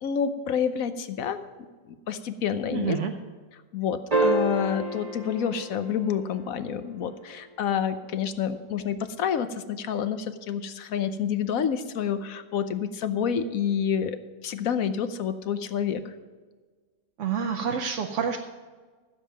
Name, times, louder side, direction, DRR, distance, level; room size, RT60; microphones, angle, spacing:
voice 1, 0.0-3.0 3.7-14.2 14.4-16.1, left 8 dB, 60° left, 11 dB, 1.1 m, -28 dB
voice 2, 2.7-3.1 17.2-18.4, right 7 dB, 60° right, 4 dB, 0.9 m, -28 dB
sound 1, 4.1-6.6 8.9-9.0, right 2 dB, 25° right, 1.3 m, -28 dB
14.5 x 7.4 x 5.1 m, 1.4 s
omnidirectional pair, 1.8 m